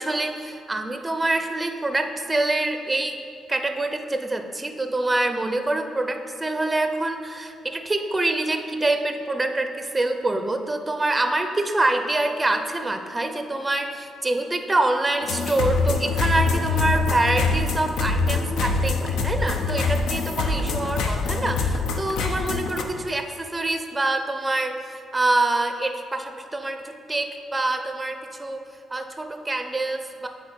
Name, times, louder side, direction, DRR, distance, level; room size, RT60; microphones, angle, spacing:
voice 1, 0.0-3.2 3.5-28.6 28.9-30.3, right 2 dB, 15° right, 6 dB, 0.5 m, -25 dB
sound 1, 15.2-22.8, left 4 dB, 85° left, 0.6 m, -24 dB
7.9 x 3.6 x 4.4 m, 2.5 s
cardioid pair, 90°, 0 cm